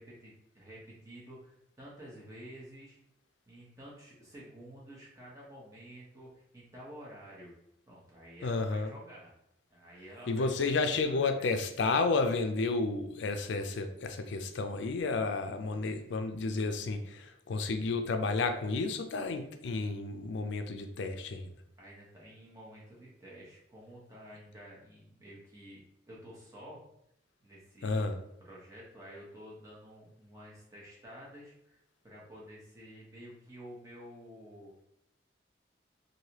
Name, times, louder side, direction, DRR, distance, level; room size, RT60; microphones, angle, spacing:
voice 1, 0.0-3.0 3.5-7.5 7.9-9.3 9.7-11.5 21.8-26.8 27.4-31.8 32.0-34.8, equal, 15° right, -5 dB, 0.9 m, -50 dB
voice 2, 8.4-8.9 10.3-21.5 27.8-28.2, left 3 dB, 75° left, 7 dB, 0.4 m, -31 dB
3.1 x 2.6 x 2.9 m, 0.78 s
head